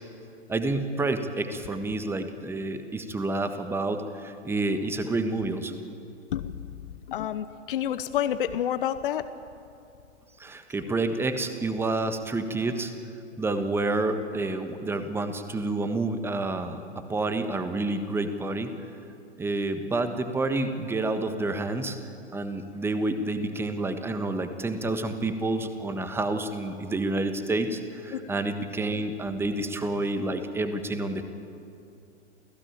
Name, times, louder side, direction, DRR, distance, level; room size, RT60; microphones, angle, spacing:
voice 1, 0.5-5.7 10.4-12.9 13.4-18.7 19.4-22.0 22.3-31.2, right 2 dB, 5° right, 9 dB, 1.4 m, -29 dB
voice 2, 7.1-9.2 28.1-28.2, left 10 dB, 45° left, 12 dB, 1.0 m, -28 dB
28.5 x 17.0 x 9.0 m, 2.6 s
figure-of-eight pair, 115°, 37 cm